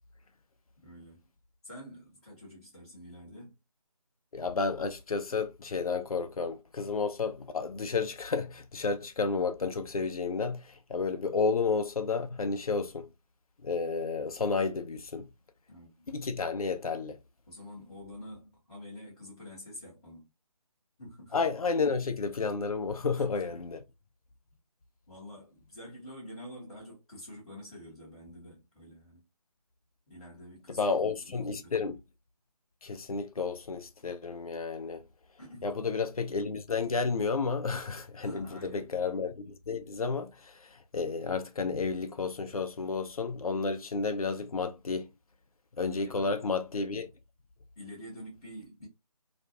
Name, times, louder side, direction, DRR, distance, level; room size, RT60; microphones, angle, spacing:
voice 1, 0.8-1.3 1.6-3.5 15.7-16.1 17.5-20.3 21.0-21.3 23.1-23.6 25.1-29.2 30.1-31.8 35.4-36.0 38.2-39.0 45.8-46.3 47.8-48.9, equal, 10° left, 0.6 m, -48 dB
voice 2, 4.3-13.1 13.6-15.3 16.1-17.2 21.3-23.8 30.7-32.0 32.8-35.0 35.6-38.5 38.7-45.1 45.8-47.1, left 4 dB, 65° left, 0.5 m, -31 dB
2.4 x 2.2 x 2.6 m
figure-of-eight pair, 155°, 20 cm